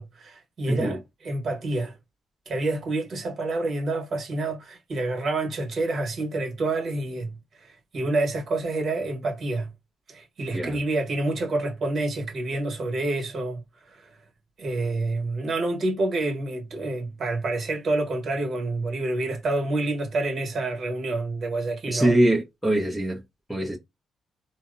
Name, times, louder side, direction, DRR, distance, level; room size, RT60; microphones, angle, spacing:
voice 1, 0.0-1.9 2.5-9.7 10.1-14.1 14.6-22.1, right 2 dB, 50° right, 1.1 m, -28 dB
voice 2, 0.7-1.0 10.5-10.8 21.9-23.2 23.5-23.8, right 1 dB, ahead, 0.7 m, -23 dB
2.7 x 2.0 x 2.5 m
cardioid pair, 90°, 0 cm